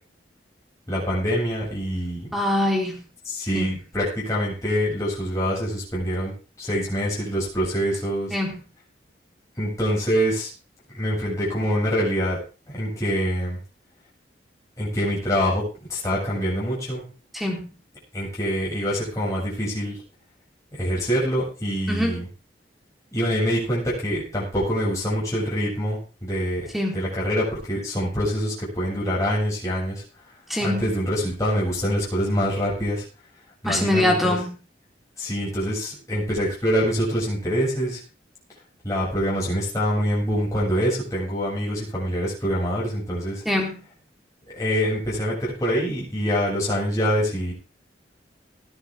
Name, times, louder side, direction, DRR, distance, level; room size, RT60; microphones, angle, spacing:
voice 1, 0.9-2.3 3.3-6.3 6.6-8.4 9.6-10.5 10.9-12.4 12.7-13.6 14.8-15.6 15.9-17.0 18.1-20.0 20.7-22.3 23.1-30.0 30.6-33.0 33.6-34.3 35.2-38.0 38.8-43.4 44.5-47.5, equal, 20° left, -7 dB, 7.1 m, -25 dB
voice 2, 2.3-2.9 3.5-3.7 8.3-8.5 17.3-17.7 21.9-22.2 26.7-27.0 30.5-30.9 33.6-34.6 43.5-43.8, left 1 dB, ahead, 1 dB, 3.8 m, -23 dB
19.0 x 10.5 x 3.7 m, 0.34 s
head